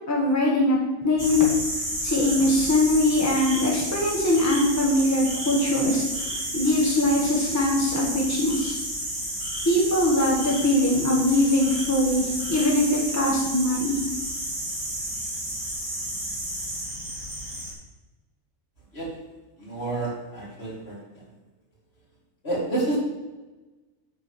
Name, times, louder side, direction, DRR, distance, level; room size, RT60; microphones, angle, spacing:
voice 1, 0.1-1.5 2.0-6.3 6.5-8.8 9.6-14.0, left 1 dB, 15° left, -3 dB, 1.4 m, -22 dB
sound 1, 1.2-17.7, right 1 dB, 15° right, 2.2 m, -31 dB
voice 2, 19.6-21.0 22.4-23.0, right 2 dB, 50° left, -5 dB, 3.0 m, -29 dB
9.4 x 4.0 x 6.7 m, 1.2 s
omnidirectional pair, 1.3 m